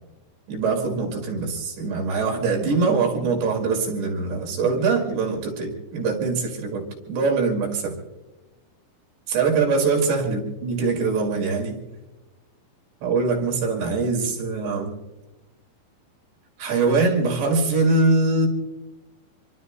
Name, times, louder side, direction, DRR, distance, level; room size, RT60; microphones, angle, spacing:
voice 1, 0.5-7.9 9.3-11.8 13.0-14.9 16.6-18.5, right 4 dB, 70° right, 1 dB, 4.3 m, -23 dB
27.5 x 23.5 x 2.2 m, 1.1 s
omnidirectional pair, 5.3 m